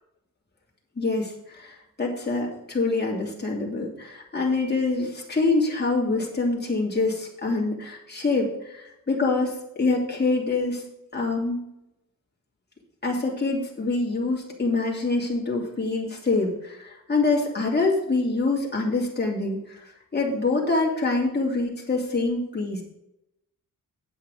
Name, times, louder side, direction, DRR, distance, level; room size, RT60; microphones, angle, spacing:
voice 1, 1.0-10.8 11.1-11.6 13.0-22.8, left 3 dB, 30° left, -2 dB, 2.9 m, -25 dB
8.8 x 8.2 x 4.9 m, 0.84 s
wide cardioid pair, 125°, 35 cm